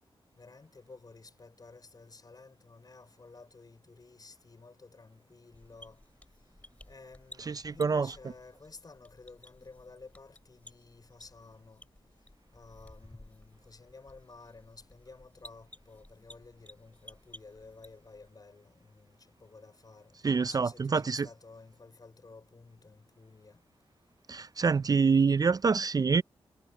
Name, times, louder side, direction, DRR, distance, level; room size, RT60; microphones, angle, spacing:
voice 1, 0.4-6.0 6.9-11.9 12.5-23.6, left 3 dB, 40° left, 5.5 m, -53 dB
sound 1, 5.5-18.3, left 1 dB, 15° left, 4.7 m, -56 dB
voice 2, 7.5-8.1 20.2-21.3 24.3-26.2, right 5 dB, 40° right, 0.4 m, -26 dB
cardioid pair, 65°, 10 cm